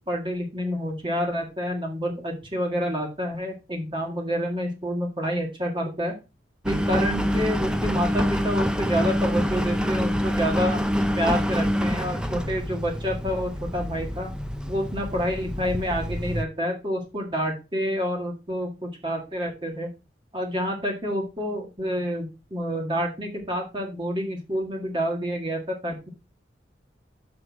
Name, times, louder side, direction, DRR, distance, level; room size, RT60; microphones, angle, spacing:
voice 1, 0.1-6.2 6.6-10.8 11.2-14.3 14.7-19.9 20.3-26.1, equal, 30° right, 1 dB, 1.8 m, -28 dB
Engine, 6.7-16.4, equal, 5° right, 0.6 m, -26 dB
6.4 x 6.0 x 4.7 m, 0.29 s
head